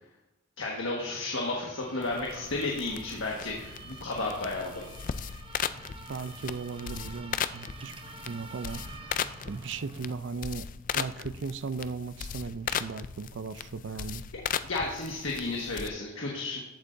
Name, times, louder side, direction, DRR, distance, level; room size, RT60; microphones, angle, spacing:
voice 1, 0.6-4.8 14.3-16.6, left 2 dB, 85° left, -2 dB, 1.5 m, -33 dB
sound 1, 1.0-10.2, right 3 dB, 25° right, 0.7 m, -48 dB
sound 2, 2.0-15.9, left 8 dB, 40° left, 0.3 m, -37 dB
voice 2, 6.1-7.9 8.3-8.8 9.5-10.7 10.9-14.2, right 4 dB, 65° right, 14 dB, 0.4 m, -37 dB
14.5 x 8.3 x 2.6 m, 0.97 s
head